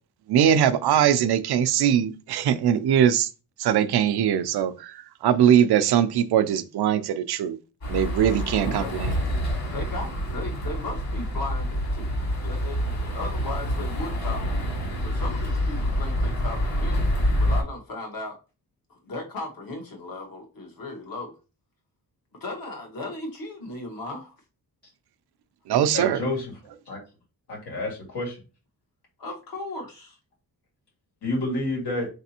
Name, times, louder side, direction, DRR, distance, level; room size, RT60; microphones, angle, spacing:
voice 1, 0.3-3.3 3.6-7.6 7.9-9.2 25.7-26.2, right 9 dB, 80° right, 0.5 m, -21 dB
sound 1, 7.8-17.6, equal, 45° left, 1.9 m, -27 dB
voice 2, 9.7-12.2 12.4-18.4 18.9-21.3 22.4-24.3 29.2-30.2, left 2 dB, 60° left, 1.5 m, -36 dB
voice 3, 25.9-26.5 26.9-27.0 27.5-28.4 31.2-32.1, left 2 dB, 85° left, 2.2 m, -29 dB
4.0 x 3.4 x 2.8 m
wide cardioid pair, 115°, 39 cm